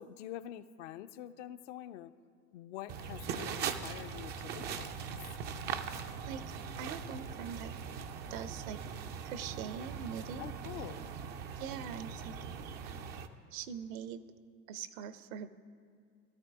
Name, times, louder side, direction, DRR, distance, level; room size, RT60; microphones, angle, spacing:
voice 1, 0.0-2.1 2.5-5.2 10.4-11.1, left 12 dB, 50° left, 10 dB, 0.6 m, -46 dB
sound 1, 2.9-13.3, right 6 dB, 25° right, 0.4 m, -41 dB
voice 2, 6.2-7.7 8.3-8.8 9.2-10.5 11.6-12.4 13.5-14.2 14.7-15.5, right 7 dB, 55° right, 13 dB, 0.8 m, -42 dB
17.0 x 12.5 x 3.5 m, 2.2 s
hypercardioid pair, 95°, 49 cm